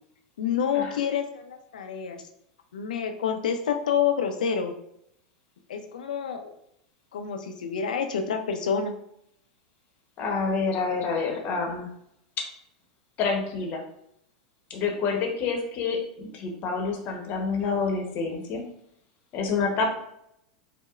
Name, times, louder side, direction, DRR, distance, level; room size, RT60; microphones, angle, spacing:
voice 1, 0.4-2.2 2.7-4.7 5.7-6.5 7.1-8.9, left 7 dB, 75° left, 5 dB, 0.5 m, -28 dB
voice 2, 10.2-11.9 13.2-13.8 14.7-18.6 19.3-19.9, left 4 dB, 45° left, 2 dB, 0.8 m, -28 dB
4.8 x 2.1 x 2.3 m, 0.75 s
hypercardioid pair, 100°, 4 cm